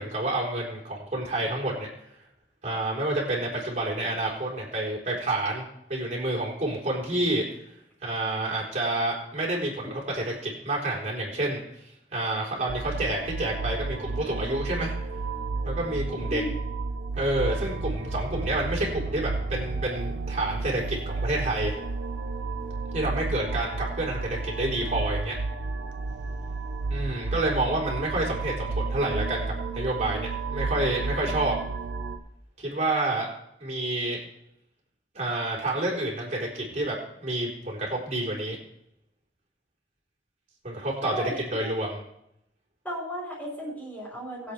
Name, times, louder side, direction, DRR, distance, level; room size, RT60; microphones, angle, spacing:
voice 1, 0.0-1.9 2.6-5.6 5.9-7.4 8.0-11.6 12.1-14.9 15.6-16.4 17.2-21.8 22.9-25.4 26.9-31.6 32.6-33.3 33.6-34.2 35.1-38.6 40.6-41.1 41.5-42.0, right 1 dB, 40° right, -2 dB, 4.0 m, -29 dB
sound 1, 12.7-32.2, right 3 dB, 85° right, 1.1 m, -32 dB
voice 2, 41.0-41.7 42.8-44.5, equal, 10° left, -7 dB, 4.9 m, -34 dB
21.5 x 8.0 x 3.4 m, 0.78 s
head